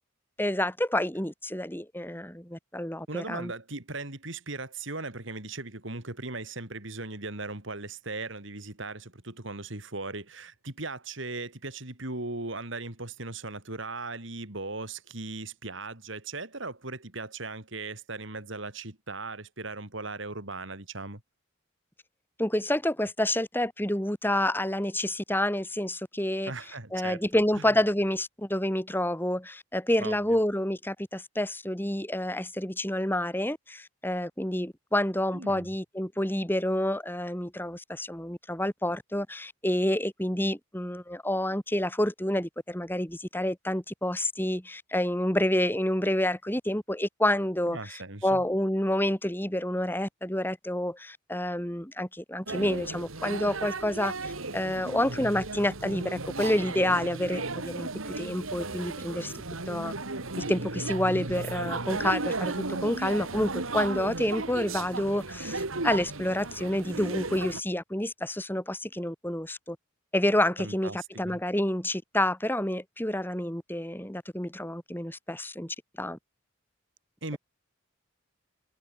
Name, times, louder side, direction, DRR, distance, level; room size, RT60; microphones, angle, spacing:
voice 1, 0.4-3.5 22.4-26.5 26.9-59.3 59.7-59.9 60.4-62.5 62.8-69.8 70.1-76.2, left 1 dB, 10° left, 3.4 m, -29 dB
voice 2, 3.1-21.2 26.5-27.2 27.5-27.6 30.0-30.2 35.3-35.7 47.7-48.4 70.6-71.4 77.2-77.4, right 3 dB, 60° right, 3.2 m, -38 dB
sound 1, 52.5-67.6, right 3 dB, 80° right, 2.6 m, -35 dB
head